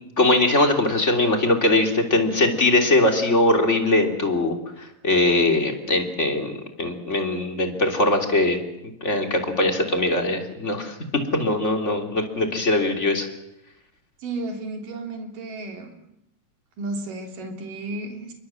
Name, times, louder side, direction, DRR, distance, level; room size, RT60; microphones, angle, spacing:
voice 1, 0.2-8.6 9.0-13.3, left 2 dB, 20° left, 3 dB, 3.2 m, -21 dB
voice 2, 14.2-15.9 16.8-18.3, right 2 dB, 80° right, 3 dB, 4.7 m, -33 dB
28.5 x 23.5 x 7.7 m, 0.83 s
omnidirectional pair, 3.7 m